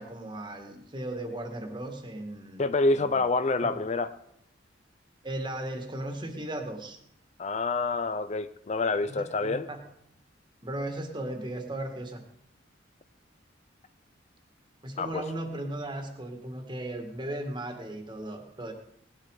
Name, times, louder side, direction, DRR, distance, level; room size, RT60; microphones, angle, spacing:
voice 1, 0.0-2.6 2.9-3.2 3.6-3.8 5.2-7.0 9.1-9.8 10.6-12.2 14.8-18.7, right 1 dB, 25° right, 4 dB, 1.9 m, -36 dB
voice 2, 2.6-4.1 7.4-9.7 15.0-15.2, left 3 dB, 35° left, 12 dB, 0.5 m, -27 dB
19.0 x 11.0 x 4.9 m, 0.75 s
head